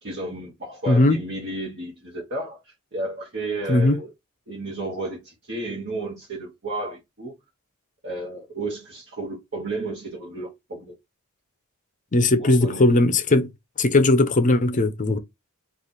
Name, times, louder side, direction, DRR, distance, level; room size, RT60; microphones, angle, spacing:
voice 1, 0.0-4.1 4.5-7.3 8.0-10.9 12.4-13.0, right 2 dB, 55° right, 1.3 m, -32 dB
voice 2, 0.9-1.2 3.7-4.0 12.1-13.5 13.8-15.2, left 2 dB, 35° left, 0.6 m, -18 dB
3.2 x 2.5 x 4.0 m
head